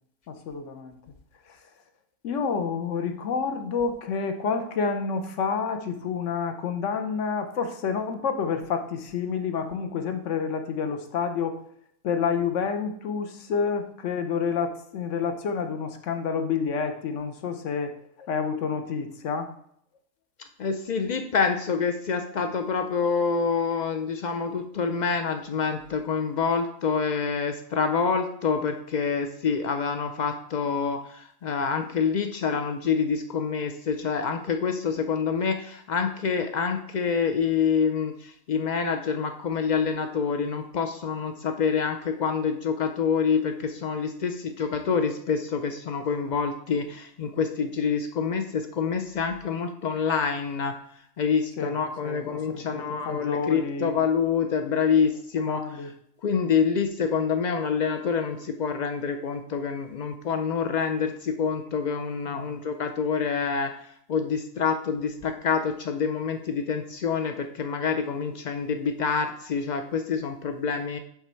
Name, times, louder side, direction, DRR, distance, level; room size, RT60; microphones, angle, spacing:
voice 1, 0.3-1.0 1.5-1.6 2.2-11.6 12.0-17.9 18.2-19.5 51.6-54.0 54.9-55.0 55.4-55.9 62.3-62.6, left 5 dB, 65° left, 7 dB, 1.1 m, -29 dB
voice 2, 20.6-31.0 31.4-38.1 38.5-50.7 51.2-55.6 56.2-63.7 64.1-71.0, left 6 dB, 85° left, 6 dB, 0.4 m, -26 dB
8.1 x 3.6 x 4.4 m, 0.67 s
omnidirectional pair, 1.4 m